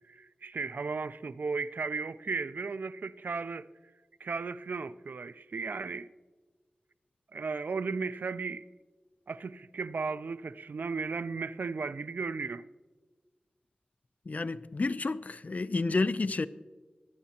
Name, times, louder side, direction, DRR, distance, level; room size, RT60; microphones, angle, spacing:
voice 1, 0.1-3.7 4.2-6.1 7.3-8.7 9.3-12.6, right 4 dB, 80° right, 0.4 m, -35 dB
voice 2, 14.3-16.5, left 3 dB, 55° left, 0.5 m, -30 dB
22.0 x 9.4 x 2.9 m
wide cardioid pair, 55°, 3 cm